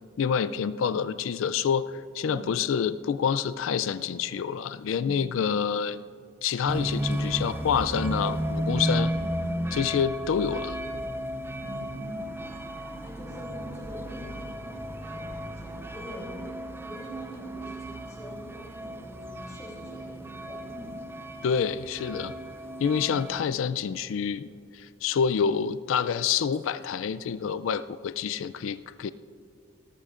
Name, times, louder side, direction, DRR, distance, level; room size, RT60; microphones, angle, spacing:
voice 1, 0.2-6.0 6.4-9.1 9.7-10.8 21.4-22.3 22.8-29.1, left 7 dB, 85° left, 14 dB, 0.4 m, -27 dB
sound 1, 6.7-23.4, right 1 dB, 10° right, 0.4 m, -34 dB
voice 2, 8.9-9.6 11.6-12.3 13.0-16.4 16.8-21.0, equal, 15° left, -3 dB, 3.2 m, -44 dB
18.0 x 13.0 x 2.5 m, 2.3 s
head